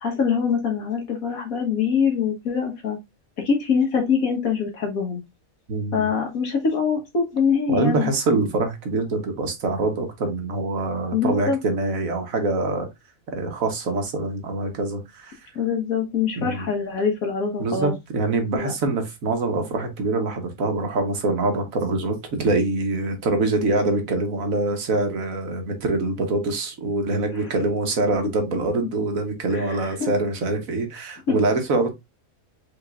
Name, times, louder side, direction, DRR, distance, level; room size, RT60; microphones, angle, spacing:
voice 1, 0.0-3.0 3.4-5.2 5.9-8.1 11.1-11.6 15.6-18.0 18.5-18.7 29.5-30.1 31.3-31.4, left 6 dB, 80° left, 1.8 m, -24 dB
voice 2, 5.7-6.1 7.7-12.9 13.3-15.4 16.4-16.7 17.6-31.9, right 2 dB, 75° right, 1.6 m, -24 dB
5.1 x 3.8 x 2.5 m
omnidirectional pair, 1.4 m